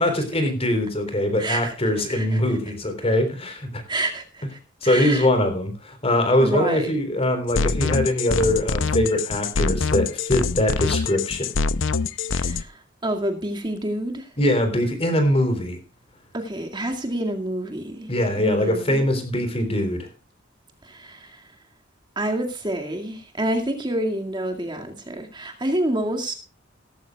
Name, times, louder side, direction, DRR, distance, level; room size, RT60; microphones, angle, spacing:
voice 1, 0.0-3.8 4.8-11.5 14.4-15.8 18.1-20.1, left 1 dB, 30° left, 3.8 m, -22 dB
voice 2, 1.4-1.8 2.1-2.4 3.9-5.3 6.4-6.9 12.3-14.3 16.3-18.1 18.4-19.0 20.8-21.4 22.2-26.3, right 1 dB, 25° right, 2.2 m, -28 dB
sound 1, 7.5-12.6, left 4 dB, 75° left, 0.7 m, -24 dB
17.5 x 14.5 x 2.4 m
head